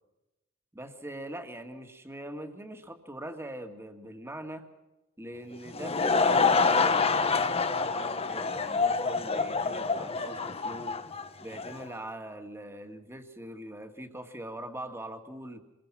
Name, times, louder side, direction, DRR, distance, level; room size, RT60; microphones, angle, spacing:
voice 1, 0.7-4.6 5.2-10.9 11.4-15.6, right 1 dB, 10° right, 6 dB, 2.0 m, -42 dB
Laughter / Crowd, 5.5-11.8, left 4 dB, 25° left, 1.1 m, -27 dB
26.0 x 22.0 x 6.0 m, 1.0 s
head